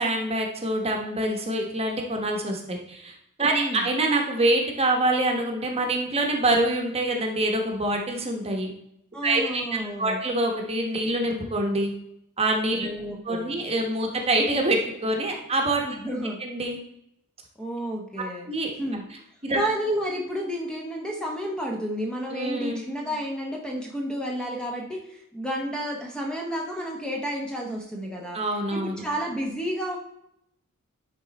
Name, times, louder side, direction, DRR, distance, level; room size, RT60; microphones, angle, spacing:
voice 1, 0.0-8.7 9.2-9.6 10.0-11.9 12.4-12.9 13.2-16.0 16.4-16.8 18.5-18.7 19.4-19.6 22.3-22.8 28.3-29.0, right 2 dB, 30° right, 2 dB, 1.1 m, -25 dB
voice 2, 3.4-3.9 9.1-10.2 12.8-13.5 15.8-16.4 17.6-18.5 18.8-19.0 19.5-28.4 28.7-30.0, equal, 5° left, 0 dB, 0.9 m, -31 dB
11.0 x 3.9 x 4.1 m, 0.75 s
head